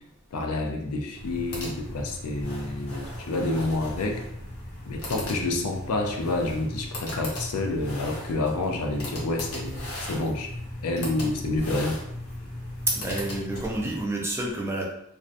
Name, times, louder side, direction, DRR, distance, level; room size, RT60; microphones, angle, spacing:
voice 1, 0.3-4.2 4.8-10.5 10.8-12.0, left 2 dB, 90° left, 3 dB, 0.4 m, -28 dB
sound 1, 1.1-14.1, left 1 dB, 70° left, 0.8 m, -37 dB
voice 2, 12.9-14.8, right 2 dB, 10° right, -1 dB, 0.3 m, -29 dB
2.5 x 2.1 x 2.5 m, 0.76 s
head